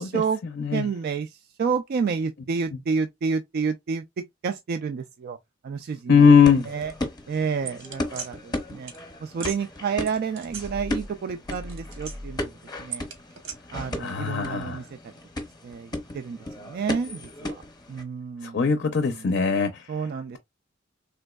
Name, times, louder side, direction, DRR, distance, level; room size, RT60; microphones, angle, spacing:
voice 1, 0.0-0.4 0.7-5.4 5.6-6.3 6.7-6.9 7.3-8.9 9.2-13.1 13.7-14.9 15.6-17.6 17.9-18.7 19.0-19.3 19.9-20.4, right 5 dB, 50° right, 0.3 m, -30 dB
voice 2, 0.6-0.9 6.1-6.7 14.0-14.8 18.4-19.9, left 6 dB, 55° left, 0.5 m, -20 dB
sound 1, 6.2-18.0, left 1 dB, 20° left, 0.7 m, -36 dB
sound 2, 7.7-8.3 8.9-9.0 9.3-9.6 10.1-11.2 11.4-12.4 12.9-13.5, right 4 dB, 80° right, 1.2 m, -37 dB
3.4 x 3.0 x 2.2 m
head